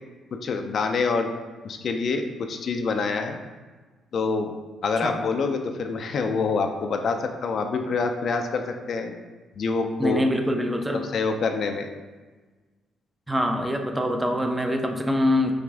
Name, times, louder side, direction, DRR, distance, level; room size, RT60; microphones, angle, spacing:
voice 1, 0.4-1.3 1.6-3.4 4.1-4.5 4.8-9.2 9.6-10.3 10.9-11.9, left 4 dB, 55° left, 5 dB, 0.4 m, -26 dB
voice 2, 10.0-11.0 13.3-15.5, left 1 dB, 10° right, 4 dB, 0.4 m, -24 dB
4.9 x 2.5 x 3.5 m, 1.3 s
cardioid pair, 90°, 0 cm